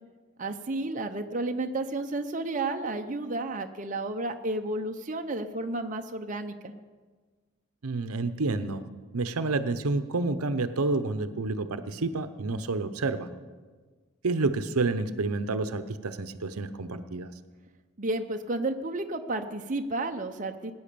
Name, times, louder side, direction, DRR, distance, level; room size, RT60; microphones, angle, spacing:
voice 1, 0.4-6.7 18.0-20.7, right 2 dB, 35° right, 5 dB, 0.7 m, -32 dB
voice 2, 7.8-8.8 9.1-13.3 14.2-17.3, right 3 dB, 90° right, 11 dB, 0.8 m, -29 dB
18.5 x 9.6 x 6.8 m, 1.4 s
head